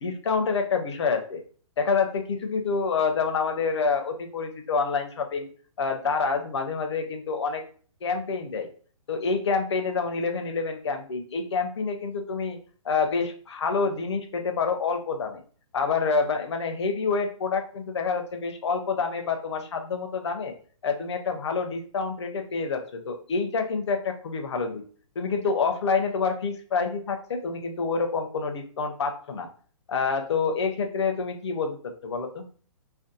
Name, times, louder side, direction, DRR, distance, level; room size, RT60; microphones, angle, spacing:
voice 1, 0.0-1.4 1.8-5.5 5.8-7.6 8.0-8.7 9.1-12.6 12.8-15.4 15.7-20.5 20.8-24.8 25.2-29.5 29.9-32.5, left 4 dB, 55° left, 5 dB, 0.5 m, -27 dB
2.5 x 2.2 x 2.5 m, 0.43 s
hypercardioid pair, 180°, 17 cm